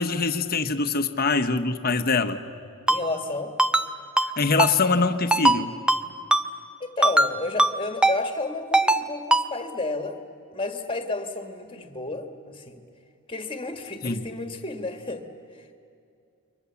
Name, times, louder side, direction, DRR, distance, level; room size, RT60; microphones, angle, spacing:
voice 1, 0.0-2.4 4.2-5.8 14.0-14.2, left 4 dB, 40° left, 9 dB, 1.0 m, -23 dB
voice 2, 2.9-3.6 6.8-10.2 10.5-12.8 13.3-15.2 15.5-15.6, left 2 dB, 25° left, 6 dB, 1.7 m, -31 dB
Ringtone, 2.9-3.0 3.6-3.9 4.2-4.3 4.6-4.7 5.3-5.6 5.9-6.0 6.3-6.4 7.0-7.3 7.6-7.7 8.0-8.2 8.7-9.0 9.3-9.4, right 1 dB, 5° right, 0.6 m, -19 dB
29.0 x 23.5 x 7.1 m, 2.4 s
head